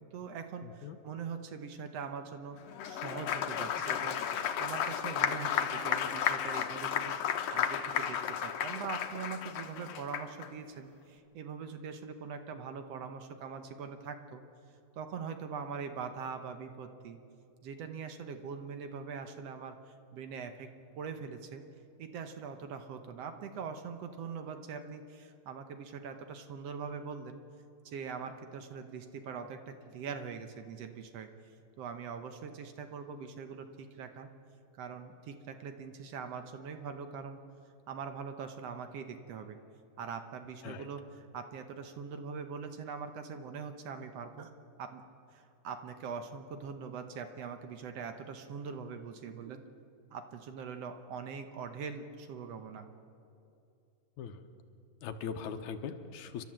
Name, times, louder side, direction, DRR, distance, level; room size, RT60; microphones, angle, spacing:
voice 1, 0.1-2.6 2.9-14.4 15.0-17.2 17.6-20.7 21.0-21.6 22.0-27.4 27.9-31.3 31.8-34.3 34.8-37.4 37.9-39.6 40.0-44.5 44.8-45.0 45.3-49.6 50.1-52.9, right 6 dB, 65° right, 7 dB, 1.9 m, -42 dB
voice 2, 0.6-1.0 40.6-40.9 54.2-54.4 55.0-56.4, left 6 dB, 85° left, 7 dB, 2.4 m, -40 dB
Applause, 2.7-10.5, left 9 dB, 70° left, 2.0 m, -33 dB
30.0 x 12.5 x 7.7 m, 2.6 s
omnidirectional pair, 3.3 m